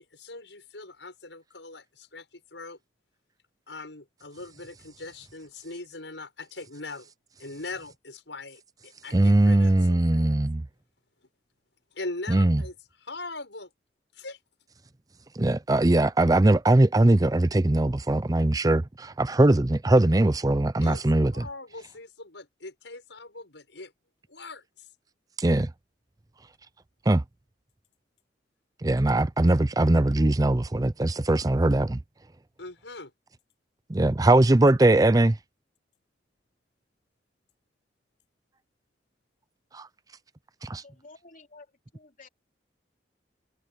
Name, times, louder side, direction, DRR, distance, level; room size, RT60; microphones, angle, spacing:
voice 1, 0.0-2.3 2.5-2.8 3.7-7.1 7.4-10.4 11.9-13.7 14.1-14.4 20.8-21.0 21.3-23.9 24.3-24.9 32.6-33.1, left 2 dB, 85° left, 7.0 m, -41 dB
voice 2, 9.1-10.6 12.3-12.6 15.4-21.5 25.4-25.7 27.1-27.2 28.8-32.0 33.9-35.4 39.7-39.9 40.6-40.8, right 2 dB, 20° right, 0.5 m, -21 dB
voice 3, 40.8-42.3, left 3 dB, 45° left, 3.9 m, -52 dB
head